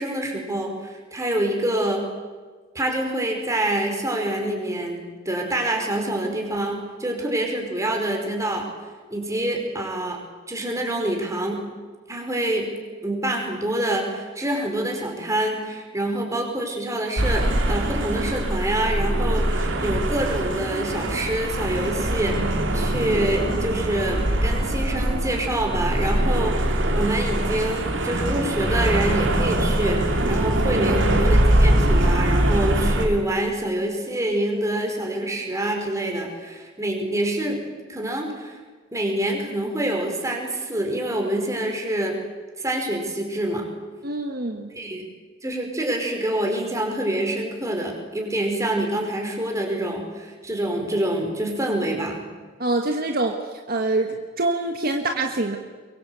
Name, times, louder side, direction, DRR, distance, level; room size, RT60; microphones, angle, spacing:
voice 1, 0.0-2.1 2.8-8.7 9.1-10.2 10.5-11.6 12.1-12.7 13.0-37.6 37.9-38.6 38.9-42.2 42.6-43.7 44.7-45.0 45.4-52.2, right 1 dB, 15° right, 1 dB, 5.0 m, -26 dB
sound 1, 17.2-33.0, right 1 dB, 70° right, 3.1 m, -22 dB
voice 2, 44.0-44.7 52.6-53.4 53.7-55.6, right 2 dB, 50° right, 4 dB, 1.6 m, -25 dB
23.5 x 23.0 x 8.3 m, 1.4 s
head